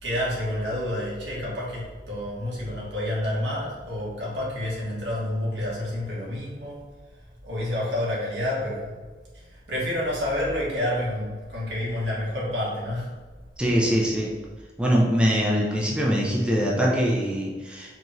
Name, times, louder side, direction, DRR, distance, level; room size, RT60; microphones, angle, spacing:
voice 1, 0.0-6.8 7.4-8.9 9.3-13.1, left 1 dB, 80° right, -6 dB, 1.4 m, -29 dB
voice 2, 13.6-14.3 14.8-18.0, equal, 5° right, -4 dB, 0.5 m, -23 dB
4.6 x 3.0 x 2.6 m, 1.3 s
head